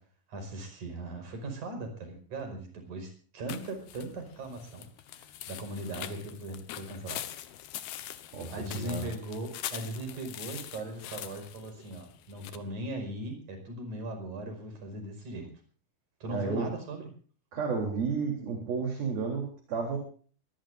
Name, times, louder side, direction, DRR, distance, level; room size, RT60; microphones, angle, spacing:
voice 1, 0.3-7.2 8.5-15.5 16.2-17.1, right 2 dB, 55° right, 6 dB, 6.7 m, -39 dB
sound 1, 3.5-12.6, left 12 dB, 85° left, 3.1 m, -43 dB
voice 2, 8.3-9.1 16.3-16.7 17.5-20.0, right 5 dB, 70° right, 1 dB, 5.4 m, -32 dB
23.5 x 20.0 x 2.6 m, 0.43 s
omnidirectional pair, 4.3 m